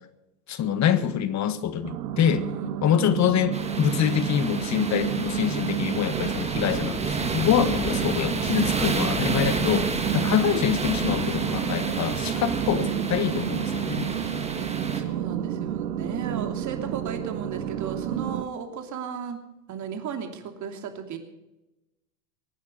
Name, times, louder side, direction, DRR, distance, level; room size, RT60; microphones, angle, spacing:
voice 1, 0.5-2.4 2.8-14.1, left 9 dB, 35° left, 13 dB, 1.5 m, -25 dB
sound 1, 1.8-18.4, right 10 dB, 80° right, 1.4 m, -30 dB
voice 2, 2.4-3.3 12.6-13.1 14.9-19.4 19.7-21.2, right 7 dB, 35° right, 5 dB, 2.9 m, -35 dB
sound 2, 3.5-15.0, right 3 dB, 15° right, 2.0 m, -30 dB
23.0 x 9.4 x 5.2 m, 1.0 s
hypercardioid pair, 95°, 48 cm